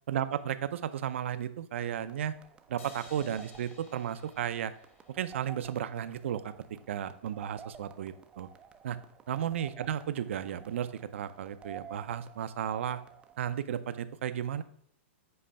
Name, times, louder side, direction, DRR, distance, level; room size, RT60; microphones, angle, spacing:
voice 1, 0.1-2.3 2.7-4.7 5.1-6.5 6.9-8.5 8.8-9.0 9.3-13.0 13.4-14.6, right 10 dB, 70° right, 12 dB, 0.5 m, -34 dB
sound 1, 1.8-13.4, right 8 dB, 15° right, 0.4 m, -52 dB
sound 2, 2.8-6.1, left 4 dB, 90° left, 1.6 m, -56 dB
7.6 x 3.2 x 5.6 m, 0.63 s
hypercardioid pair, 150°, 7 cm